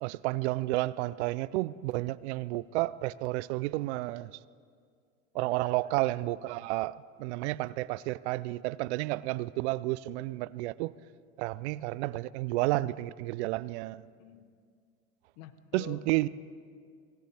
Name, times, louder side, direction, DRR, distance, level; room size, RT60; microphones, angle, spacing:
voice 1, 0.0-4.3 5.3-10.9 11.4-14.1 15.7-16.3, right 18 dB, 70° right, 0.5 m, -31 dB
voice 2, 5.3-5.9 14.2-14.5 15.4-16.0, left 10 dB, 60° left, 1.1 m, -48 dB
18.5 x 17.0 x 3.4 m
supercardioid pair, 110°, 35 cm